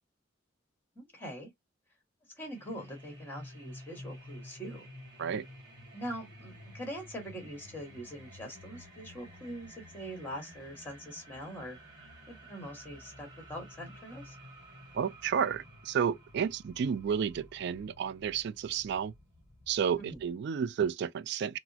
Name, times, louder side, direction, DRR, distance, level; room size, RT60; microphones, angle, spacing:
voice 1, 0.9-1.5 2.4-4.9 5.9-14.3 20.0-20.2, equal, 10° left, 1.6 m, -43 dB
sound 1, 2.4-20.3, equal, 20° right, 1.5 m, -52 dB
voice 2, 14.9-19.1 19.7-21.6, right 7 dB, 55° right, 0.3 m, -31 dB
4.0 x 2.0 x 2.7 m
head